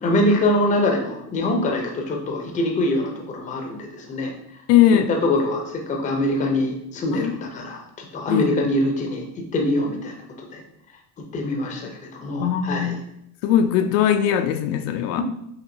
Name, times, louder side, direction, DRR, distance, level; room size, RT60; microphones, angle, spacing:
voice 1, 0.0-4.3 5.1-10.6 11.3-13.0 15.2-15.3, left 1 dB, 20° left, 2 dB, 0.5 m, -24 dB
voice 2, 4.7-5.1 7.1-7.3 8.3-8.5 12.4-13.0 13.4-15.2, left 10 dB, 75° left, 8 dB, 0.5 m, -19 dB
5.8 x 2.7 x 2.6 m, 0.77 s
cardioid pair, 150°, 39 cm